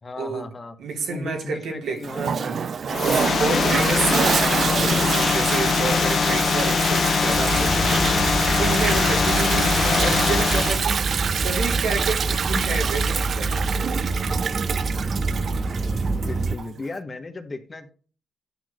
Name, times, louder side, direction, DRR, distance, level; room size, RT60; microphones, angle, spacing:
voice 1, 0.0-0.7 1.1-2.5 2.9-3.9 16.1-17.9, left 3 dB, 40° left, 7 dB, 1.2 m, -36 dB
voice 2, 0.8-13.9, right 4 dB, 80° right, 2 dB, 1.9 m, -29 dB
Toilet flush, 2.0-16.7, right 6 dB, 60° right, 0.3 m, -27 dB
sound 1, 2.9-10.9, left 5 dB, 65° left, 0.6 m, -22 dB
sound 2, 7.3-16.6, right 3 dB, 40° right, 0.7 m, -27 dB
9.9 x 6.1 x 2.5 m, 0.40 s
supercardioid pair, 55°, 0 cm